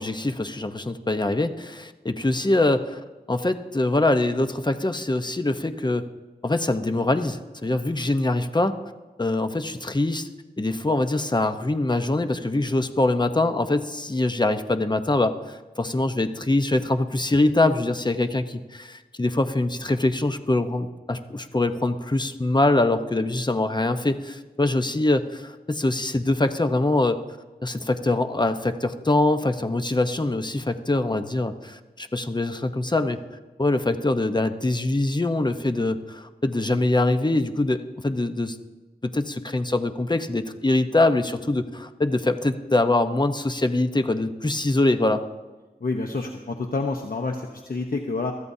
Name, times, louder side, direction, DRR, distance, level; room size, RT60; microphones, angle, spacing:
voice 1, 0.0-3.0 3.3-6.0 6.4-8.7 9.2-10.3 10.6-27.2 27.6-33.2 33.6-38.6 39.1-45.2, left 2 dB, 25° left, 8 dB, 0.9 m, -23 dB
voice 2, 45.8-48.3, left 3 dB, 65° left, 3 dB, 1.0 m, -28 dB
23.0 x 14.0 x 2.8 m, 1.2 s
wide cardioid pair, 50°, 16 cm